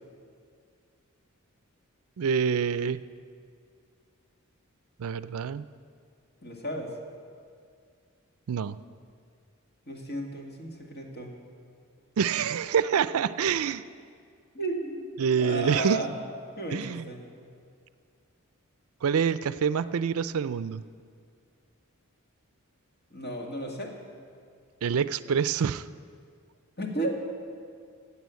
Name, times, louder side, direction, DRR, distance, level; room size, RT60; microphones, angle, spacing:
voice 1, 2.2-3.0 5.0-5.6 8.5-8.8 12.2-13.8 15.2-16.0 16.7-17.1 19.0-20.8 24.8-25.8, right 7 dB, 70° right, 14 dB, 0.4 m, -26 dB
voice 2, 6.4-6.9 9.9-11.3 13.1-13.2 14.5-15.1 15.4-16.1 16.6-17.2 23.1-24.0 26.8-27.2, right 1 dB, 45° left, 0 dB, 2.0 m, -33 dB
15.5 x 8.2 x 8.3 m, 2.2 s
head